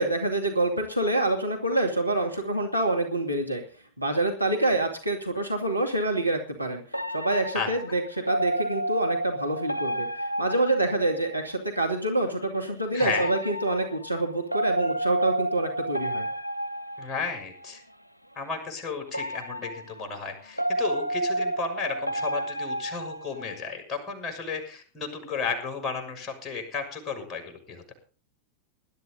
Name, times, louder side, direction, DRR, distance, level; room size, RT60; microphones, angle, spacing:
voice 1, 0.0-3.6 4.0-6.8 7.1-16.3, right 2 dB, 90° right, 1 dB, 2.3 m, -26 dB
sound 1, 6.9-11.5 13.1-17.7 19.1-23.7, right 1 dB, 90° left, 0.8 m, -31 dB
voice 2, 12.9-13.3 17.0-17.8 18.3-27.9, left 5 dB, 20° left, 3 dB, 6.4 m, -33 dB
20.5 x 12.5 x 3.9 m, 0.40 s
figure-of-eight pair, 90°, 0 cm